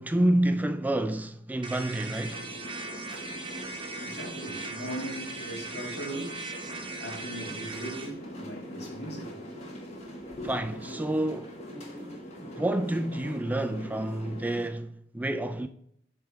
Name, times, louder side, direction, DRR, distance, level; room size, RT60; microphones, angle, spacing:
voice 1, 0.0-2.5 10.5-15.7, right 1 dB, 10° right, 0.3 m, -29 dB
sound 1, 1.6-8.1, right 3 dB, 25° right, 0.9 m, -39 dB
sound 2, 2.0-14.7, equal, 35° left, 1.7 m, -42 dB
voice 2, 3.6-6.5 6.8-10.5, right 1 dB, 65° left, 2.1 m, -40 dB
8.9 x 3.5 x 5.9 m
head